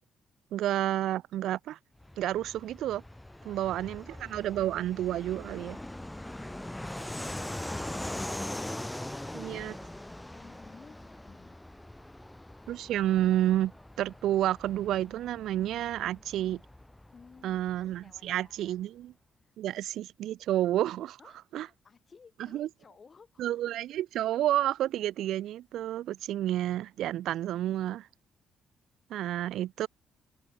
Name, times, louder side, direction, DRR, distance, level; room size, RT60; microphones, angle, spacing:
voice 1, 0.5-1.8 2.2-3.0 3.4-5.8 9.3-9.7 12.7-13.7 14.0-16.6 17.4-19.1 19.6-21.2 21.5-21.7 22.5-22.7 23.4-28.1 29.1-29.9, right 13 dB, 80° right, 0.7 m, -30 dB
Fixed-wing aircraft airplane, 2.0-18.2, left 1 dB, 10° left, 5.7 m, -42 dB
voice 2, 3.4-4.3 10.3-11.6 17.1-17.6 18.0-18.7 19.4-19.5 21.2-23.5, left 5 dB, 40° left, 6.3 m, -57 dB
cardioid pair, 90°, 0 cm